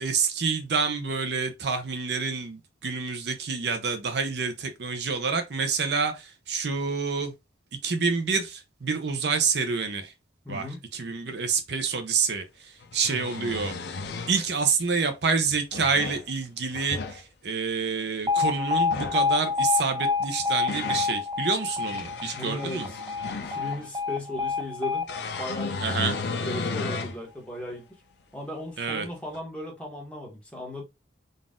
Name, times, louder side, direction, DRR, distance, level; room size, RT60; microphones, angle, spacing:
voice 1, 0.0-7.3 7.8-10.1 10.5-10.7 10.9-13.8 14.3-22.9 25.8-26.2 28.8-29.1, right 5 dB, 60° right, 0.6 m, -28 dB
voice 2, 10.4-10.8 22.3-22.8 23.4-25.1 25.4-26.1 26.4-27.9 28.3-30.8, left 1 dB, 5° left, 1.3 m, -36 dB
sound 1, 11.9-12.0 12.8-14.5 15.5-16.2 16.7-17.2 18.8-19.2 20.2-21.1 21.7-23.9 25.1-27.2 27.7-27.8 29.3-29.4, left 3 dB, 60° left, 0.5 m, -34 dB
Alarm, 18.3-26.3, left 4 dB, 20° right, 0.3 m, -28 dB
4.0 x 2.5 x 3.6 m
head